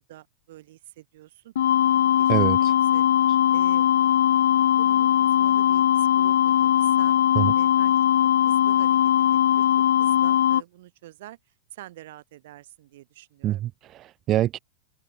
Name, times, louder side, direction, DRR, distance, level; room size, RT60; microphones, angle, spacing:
voice 1, 0.0-1.5 1.9-2.3 2.6-3.0 3.5-4.1 4.8-7.2 7.5-8.0 8.4-9.6 10.0-11.4 11.7-13.6, right 15 dB, 60° right, 6.7 m, -46 dB
sound 1, 1.6-10.6, left 10 dB, 85° left, 0.5 m, -20 dB
voice 2, 2.3-2.7 7.4-7.5 13.4-14.6, right 13 dB, 25° right, 1.6 m, -25 dB
supercardioid pair, 165°, 0 cm